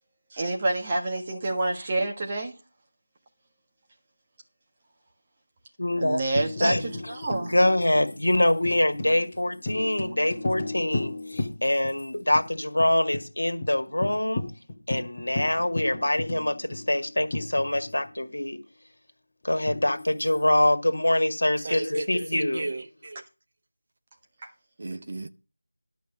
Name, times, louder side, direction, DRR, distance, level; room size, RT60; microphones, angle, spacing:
voice 1, 0.3-2.5 6.0-7.5 24.4-24.5, right 2 dB, 20° right, 1.6 m, -28 dB
voice 2, 5.8-6.2 6.6-6.8 7.3-14.5 14.9-18.6 19.4-22.7, left 1 dB, 70° left, 1.9 m, -24 dB
Tambourine, 6.4-12.0 12.3-12.4 12.8-13.3 13.6-13.7 14.0-18.1 19.7-20.6, left 2 dB, 20° left, 1.6 m, -35 dB
voice 3, 21.6-23.2 24.8-25.3, right 2 dB, 40° right, 0.7 m, -34 dB
11.5 x 5.3 x 7.4 m
figure-of-eight pair, 170°, 0 cm